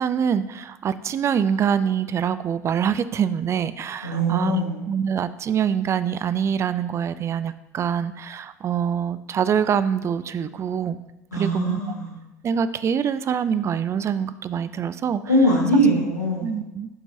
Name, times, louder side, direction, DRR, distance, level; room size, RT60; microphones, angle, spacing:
voice 1, 0.0-11.0 11.3-11.9 12.4-15.2 16.4-16.9, right 8 dB, 30° right, 14 dB, 0.4 m, -25 dB
voice 2, 4.0-4.8 11.3-12.1 15.3-16.6, equal, 90° left, -4 dB, 1.7 m, -21 dB
11.0 x 4.5 x 2.7 m, 0.95 s
figure-of-eight pair, 70°, 9 cm